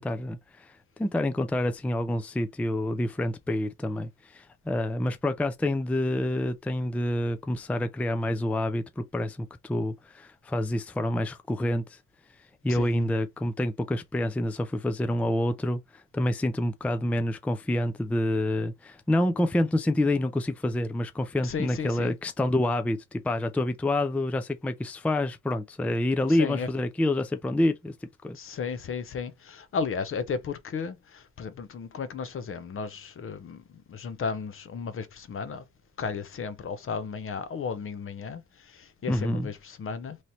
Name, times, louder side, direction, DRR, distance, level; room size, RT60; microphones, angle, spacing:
voice 1, 0.0-12.0 12.6-27.9 28.2-28.4 39.1-39.5, left 1 dB, 5° left, 0.4 m, -28 dB
voice 2, 12.7-13.1 21.4-22.1 26.3-26.7 28.3-35.6 36.0-40.2, left 5 dB, 45° left, 0.7 m, -34 dB
3.1 x 2.8 x 4.1 m
cardioid pair, 90°, 30 cm